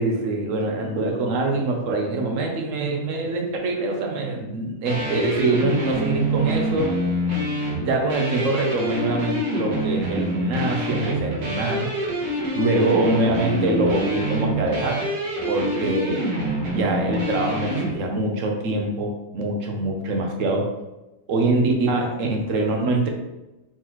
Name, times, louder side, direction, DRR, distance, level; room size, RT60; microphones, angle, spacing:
voice 1, 0.0-7.0 7.8-11.9 12.6-15.1 15.5-16.2 16.7-20.7 21.3-23.1, right 2 dB, 60° right, 2 dB, 1.1 m, -24 dB
sound 1, 4.9-17.9, right 1 dB, 85° right, 1.6 m, -26 dB
4.3 x 3.9 x 3.0 m, 1.0 s
omnidirectional pair, 1.7 m